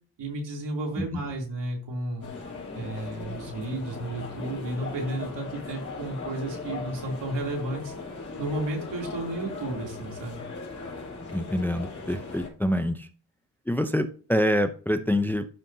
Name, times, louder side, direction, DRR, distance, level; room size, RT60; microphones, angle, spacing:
voice 1, 0.2-2.3 2.7-7.9 8.4-10.4, right 2 dB, 75° right, 0 dB, 3.1 m, -33 dB
sound 1, 2.2-12.5, left 4 dB, 40° left, 3.9 m, -38 dB
voice 2, 11.3-13.1 13.7-15.5, equal, 5° left, 9 dB, 0.6 m, -26 dB
12.5 x 5.3 x 2.7 m, 0.41 s
cardioid pair, 85°, 43 cm